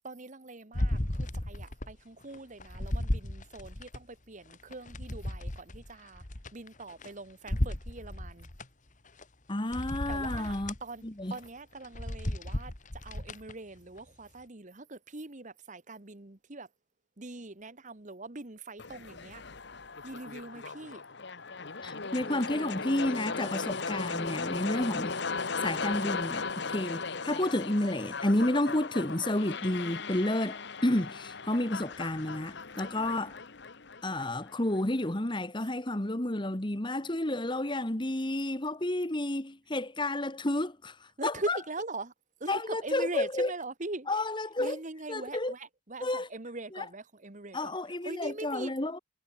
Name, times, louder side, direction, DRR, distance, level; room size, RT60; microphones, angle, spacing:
voice 1, 0.0-6.3 6.5-8.5 10.1-11.0 11.3-12.7 13.0-16.7 17.2-19.4 20.0-21.0 41.2-42.1 42.4-44.1 44.6-47.8 48.0-48.7, right 2 dB, 40° right, 1.3 m, -42 dB
sound 1, 0.7-2.0 2.3-4.0 4.5-7.1 7.5-8.7 9.2-9.3 9.7-10.8 11.3-11.5 11.8-13.5 14.0-14.1, left 1 dB, 40° left, 1.9 m, -34 dB
voice 2, 9.5-10.7 11.0-11.3 21.8-25.2 25.6-33.4 34.0-40.9 41.2-41.6 42.5-43.5 44.1-44.8 45.1-45.5 46.0-46.3 46.7-46.8 47.5-49.0, left 1 dB, 25° left, 1.5 m, -31 dB
sound 2, 18.8-34.8, left 4 dB, 60° left, 1.4 m, -37 dB
head